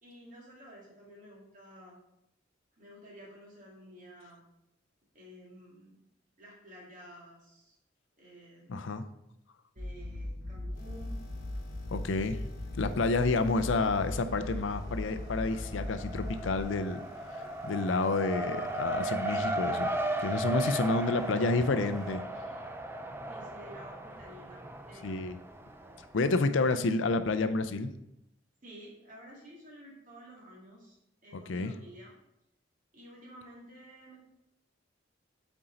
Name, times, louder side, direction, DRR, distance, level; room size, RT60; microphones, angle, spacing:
voice 1, 0.0-2.0 2.8-4.4 5.1-6.0 6.4-7.8 8.2-8.9 9.7-11.2 20.6-21.3 23.3-25.2 25.8-25.9 26.6-26.7 28.6-31.0 31.2-32.2 32.9-34.2, equal, 45° right, -3 dB, 2.2 m, -51 dB
voice 2, 8.7-9.0 11.9-12.4 12.8-17.0 17.3-19.9 20.2-22.2 25.0-25.4 26.1-27.9 31.3-31.7, left 3 dB, 85° left, 11 dB, 0.5 m, -29 dB
sound 1, 9.8-16.6, left 1 dB, 70° right, 2.3 m, -39 dB
sound 2, 10.7-22.2, left 2 dB, 50° left, 1.2 m, -55 dB
Race car auto racing, 13.7-14.4 14.7-26.1, right 1 dB, 10° right, 0.4 m, -36 dB
7.9 x 4.5 x 3.9 m, 0.83 s
head